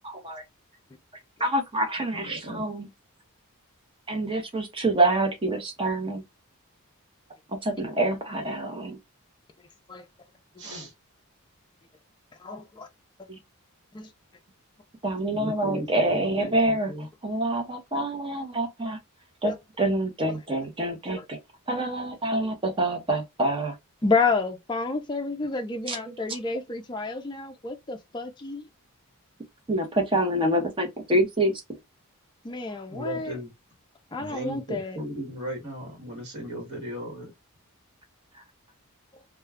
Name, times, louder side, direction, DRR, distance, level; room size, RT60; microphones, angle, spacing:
voice 1, 1.4-2.9 4.1-6.2 7.5-9.0 13.3-13.4 15.0-16.9 17.2-19.0 19.4-21.4 21.7-23.7 25.9-26.0 29.7-31.5, right 1 dB, 25° right, 0.7 m, -26 dB
voice 2, 2.2-2.7 10.6-10.9 15.3-17.1 32.9-33.5 34.2-37.3, equal, 50° right, 1.2 m, -36 dB
voice 3, 12.4-12.9 13.9-14.1 19.4-19.6 21.1-21.2 24.0-28.6 32.4-33.4 34.1-35.0, left 4 dB, 20° left, 0.4 m, -29 dB
2.2 x 2.2 x 3.3 m
head